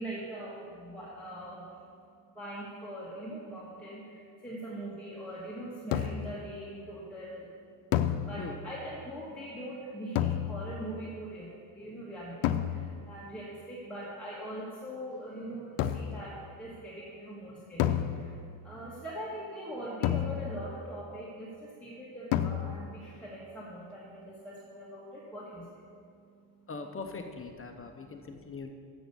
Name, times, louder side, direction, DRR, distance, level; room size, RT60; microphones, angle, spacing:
voice 1, 0.0-1.9 2.3-7.5 7.9-26.7 27.7-28.7, right 1 dB, 5° left, -8 dB, 1.6 m, -42 dB
sound 1, 5.9-6.5 7.9-8.8 10.1-10.9 12.4-13.1 15.8-16.3 17.8-18.7 20.0-20.8 22.3-23.0, left 10 dB, 80° left, 0.6 m, -31 dB
voice 2, 26.7-28.7, left 4 dB, 30° left, 5 dB, 0.6 m, -41 dB
7.6 x 7.1 x 6.7 m, 2.3 s
cardioid pair, 115°, 48 cm